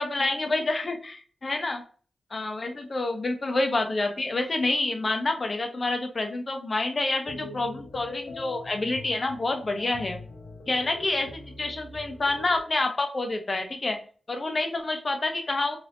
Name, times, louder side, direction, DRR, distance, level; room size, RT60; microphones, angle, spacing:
voice 1, 0.0-1.8 2.3-10.2 10.7-14.0 14.3-15.8, left 2 dB, 35° left, 4 dB, 0.6 m, -28 dB
sound 1, 7.3-12.6, left 3 dB, 75° left, 0.6 m, -42 dB
3.4 x 2.6 x 2.5 m, 0.41 s
wide cardioid pair, 125°, 0 cm